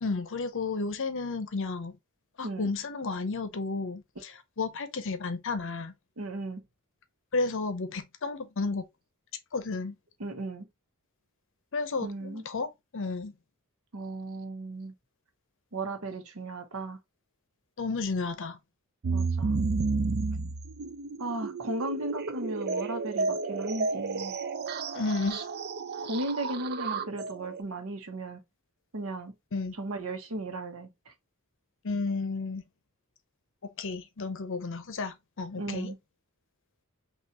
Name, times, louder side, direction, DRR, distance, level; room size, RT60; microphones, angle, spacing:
voice 1, 0.0-1.9 2.4-5.9 7.3-8.9 9.5-9.9 11.7-13.3 17.8-18.6 24.9-25.4 29.5-29.7 31.8-32.6 33.8-35.9, left 3 dB, 60° left, 0.7 m, -32 dB
voice 2, 6.2-6.6 10.2-10.7 12.0-12.4 13.9-14.9 15.7-17.0 19.1-19.6 21.2-24.3 26.0-28.4 28.9-29.3 29.8-31.1 35.5-36.0, right 2 dB, 75° right, 0.9 m, -36 dB
sound 1, 19.0-27.6, right 3 dB, 50° right, 0.5 m, -31 dB
5.6 x 2.4 x 2.8 m
head